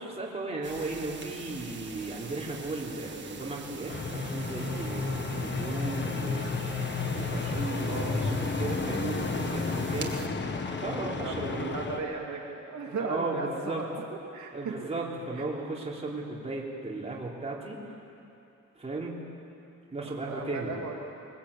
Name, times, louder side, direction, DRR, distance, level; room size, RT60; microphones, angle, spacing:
voice 1, 0.0-6.8 7.1-10.2 10.8-11.8 13.0-13.8 14.5-17.8 18.8-19.2 19.9-20.7, right 2 dB, 20° right, -4 dB, 3.6 m, -36 dB
sound 1, 0.6-10.3, right 4 dB, 35° right, 1.7 m, -44 dB
sound 2, 3.9-12.0, left 4 dB, 35° left, 1.4 m, -32 dB
voice 2, 7.8-8.4 11.1-14.9 15.3-15.5 20.0-21.0, right 4 dB, 65° right, 0 dB, 2.4 m, -37 dB
21.5 x 21.0 x 8.5 m, 2.8 s
wide cardioid pair, 150°, 30 cm